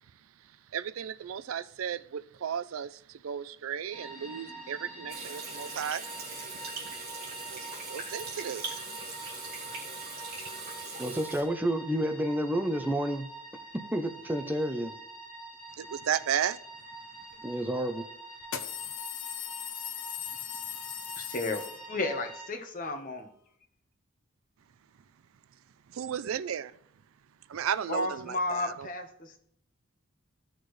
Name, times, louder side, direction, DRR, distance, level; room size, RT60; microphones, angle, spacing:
voice 1, 0.7-6.1 6.8-6.9 7.5-8.8 15.8-16.6 25.9-26.7 27.5-28.9, right 8 dB, 85° right, 0.4 m, -34 dB
sound 1, 3.9-22.5, right 2 dB, 25° left, 2.0 m, -46 dB
Water tap faucet / Sink (filling or washing), 5.1-11.4, right 3 dB, 50° right, 2.7 m, -41 dB
voice 2, 11.0-13.3 13.7-14.9 17.4-18.1, right 1 dB, 10° right, 0.6 m, -30 dB
sound 2, 17.3-17.4 18.4-22.2, left 10 dB, 85° left, 0.8 m, -39 dB
voice 3, 21.2-21.6 21.9-23.3 27.9-29.4, left 2 dB, 40° left, 1.1 m, -33 dB
15.0 x 6.5 x 3.2 m
head